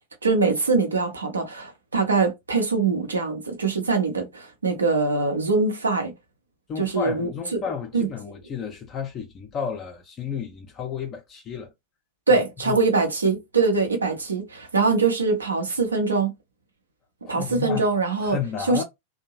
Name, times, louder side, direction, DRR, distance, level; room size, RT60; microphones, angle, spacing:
voice 1, 0.2-6.1 6.8-7.3 7.9-8.1 12.3-16.3 17.3-18.4 18.7-18.8, right 4 dB, 75° right, 0.8 m, -23 dB
voice 2, 6.7-11.7 12.3-12.8 17.3-17.9 18.2-18.8, left 7 dB, 30° left, 0.5 m, -32 dB
2.6 x 2.1 x 2.9 m
figure-of-eight pair, 90°, 0 cm